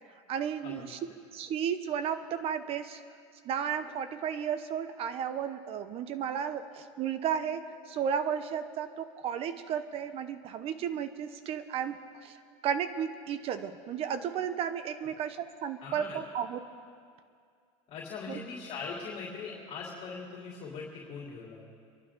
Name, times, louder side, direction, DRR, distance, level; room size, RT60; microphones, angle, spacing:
voice 1, 0.3-1.0 1.3-3.0 3.4-12.4 12.6-16.7 18.3-18.4, right 8 dB, 40° right, 10 dB, 1.0 m, -33 dB
voice 2, 15.8-16.2 17.9-21.6, left 4 dB, 40° left, -4 dB, 3.3 m, -41 dB
28.0 x 11.5 x 3.8 m, 2.2 s
supercardioid pair, 135°, 15 cm